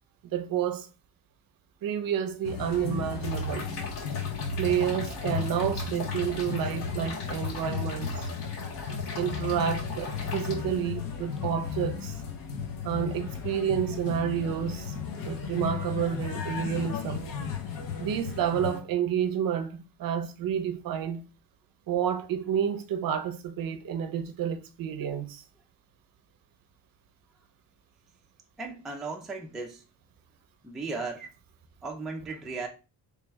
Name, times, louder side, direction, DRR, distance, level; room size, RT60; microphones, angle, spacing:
voice 1, 0.3-0.9 1.8-3.7 4.6-8.2 9.2-12.2 12.8-14.9 15.2-17.2 18.0-21.2 21.9-25.4, right 9 dB, 55° right, 0.5 m, -30 dB
sound 1, 2.4-18.8, left 6 dB, 55° left, 0.8 m, -34 dB
sound 2, 3.2-10.5, left 3 dB, 80° left, 2.0 m, -41 dB
voice 2, 28.6-29.8 30.6-31.3 31.8-32.7, right 3 dB, ahead, 0.4 m, -36 dB
3.3 x 3.0 x 3.4 m
cardioid pair, 175°, 41 cm